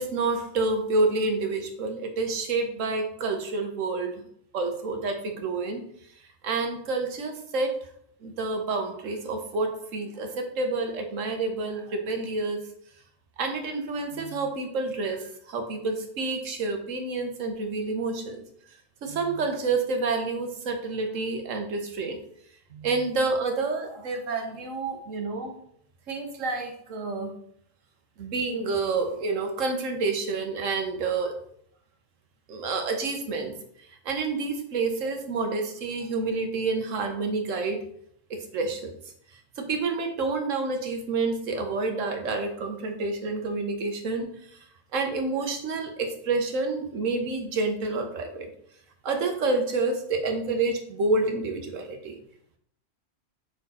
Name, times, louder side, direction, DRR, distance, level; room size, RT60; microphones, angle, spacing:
voice 1, 0.0-4.3 4.5-5.8 6.4-7.9 8.2-12.6 13.4-18.4 19.0-22.2 22.7-25.6 26.1-27.3 28.2-31.4 32.5-33.5 33.9-37.8 38.3-38.9 39.6-44.6 44.9-48.5 49.0-52.1, right 3 dB, 90° right, 5 dB, 1.4 m, -28 dB
5.9 x 4.4 x 4.2 m, 0.68 s
omnidirectional pair, 1.3 m